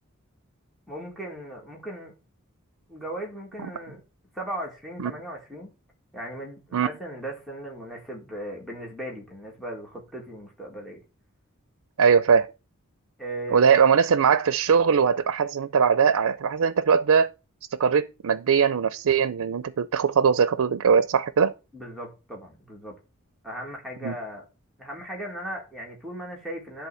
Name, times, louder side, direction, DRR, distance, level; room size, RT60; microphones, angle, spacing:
voice 1, 0.9-2.1 2.9-4.0 4.3-5.7 6.1-11.0 13.2-13.8 21.7-22.9 23.4-24.5 24.8-26.9, right 1 dB, ahead, 2.1 m, -37 dB
voice 2, 12.0-12.5 13.5-17.3 17.7-21.5 24.0-24.1, right 6 dB, 85° right, 0.5 m, -21 dB
11.0 x 3.8 x 6.9 m
head